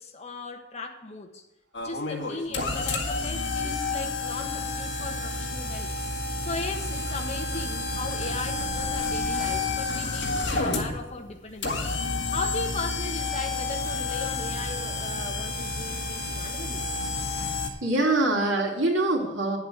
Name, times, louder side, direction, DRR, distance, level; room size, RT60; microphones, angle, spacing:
voice 1, 0.0-1.4 1.8-5.9 6.4-11.8 12.3-16.9, left 3 dB, 35° left, 3 dB, 1.4 m, -37 dB
sound 1, 1.7-17.7, left 3 dB, 65° left, 1.8 m, -30 dB
voice 2, 17.8-19.6, right 2 dB, 80° right, -2 dB, 3.1 m, -24 dB
9.7 x 8.0 x 6.5 m, 1.0 s
head